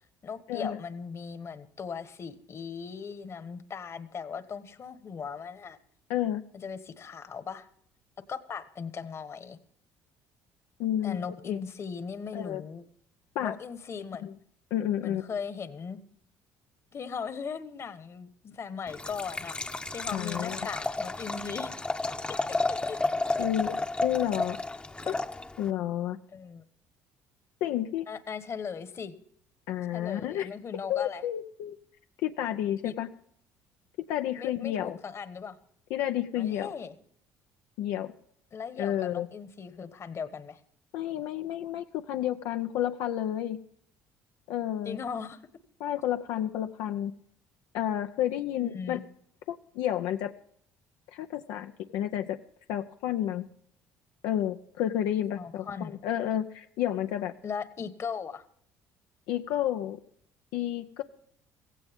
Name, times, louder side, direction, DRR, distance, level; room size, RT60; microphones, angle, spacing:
voice 1, 0.2-5.8 6.5-7.7 8.3-9.6 11.0-12.8 13.4-14.3 15.0-16.0 16.9-21.7 22.7-23.0 26.3-26.6 28.1-29.1 29.9-31.2 32.8-33.0 34.4-35.6 36.3-36.9 38.5-40.6 44.8-45.4 48.6-49.0 55.3-56.0 57.4-58.5, left 6 dB, 40° left, 12 dB, 1.3 m, -38 dB
voice 2, 6.1-6.4 10.8-11.2 11.5-11.6 12.3-12.6 13.3-13.5 14.2-14.3 14.7-15.2 20.1-20.6 23.4-24.6 25.1-25.2 25.6-26.2 27.6-28.1 29.7-30.5 30.9-31.8 32.2-33.1 34.1-34.9 35.9-36.7 37.8-38.1 38.8-39.3 40.9-43.6 44.5-45.0 45.8-47.1 47.7-49.0 49.5-50.3 51.1-52.4 52.7-53.4 54.2-57.3 59.3-60.0 60.5-61.0, left 11 dB, 80° left, 6 dB, 0.6 m, -30 dB
Liquid, 18.9-25.7, left 2 dB, 15° left, 0.8 m, -32 dB
16.5 x 15.5 x 3.6 m, 0.66 s
supercardioid pair, 90°, 7 cm